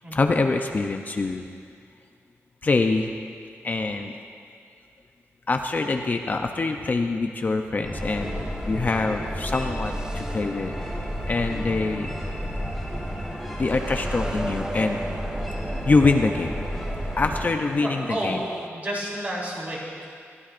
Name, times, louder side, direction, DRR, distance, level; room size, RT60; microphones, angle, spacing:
voice 1, 0.1-1.5 2.6-3.2 3.6-4.1 5.5-10.7 11.3-12.2 13.6-15.0 15.9-16.6 17.2-18.4, left 3 dB, 35° left, 4 dB, 0.6 m, -24 dB
sound 1, 7.8-17.4, equal, 5° left, 3.3 m, -31 dB
sound 2, 8.1-18.7, right 1 dB, 15° right, 0.3 m, -40 dB
voice 2, 17.8-20.0, right 1 dB, 35° right, -5 dB, 3.4 m, -31 dB
21.5 x 14.5 x 2.6 m, 2.3 s
wide cardioid pair, 160°, 5 cm